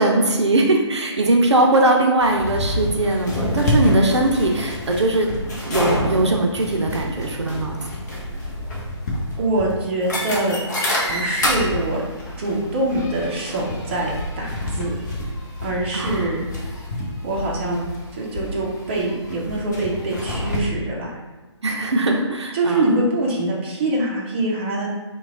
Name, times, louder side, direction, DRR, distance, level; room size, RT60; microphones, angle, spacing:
voice 1, 0.0-5.3 5.6-7.8 15.9-16.3 21.6-22.9, right 2 dB, 70° right, 1 dB, 0.5 m, -20 dB
sound 1, 2.2-20.6, left 1 dB, 40° left, 0.7 m, -27 dB
voice 2, 9.4-10.6 11.1-12.0 12.4-14.9 15.6-16.4 17.2-17.8 18.1-21.2 22.5-24.9, right 2 dB, 25° right, -4 dB, 0.6 m, -24 dB
3.1 x 2.3 x 3.5 m, 1.3 s
figure-of-eight pair, 145°, 15 cm